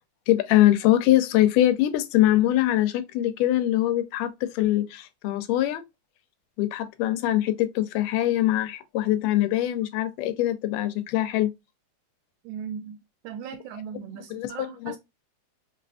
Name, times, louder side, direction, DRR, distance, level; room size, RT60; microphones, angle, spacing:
voice 1, 0.3-5.8 6.6-11.5 14.3-14.9, left 14 dB, 85° left, 2.2 m, -23 dB
voice 2, 12.4-13.0 13.2-15.0, right 7 dB, 80° right, 1.8 m, -38 dB
5.8 x 2.5 x 2.3 m
omnidirectional pair, 3.7 m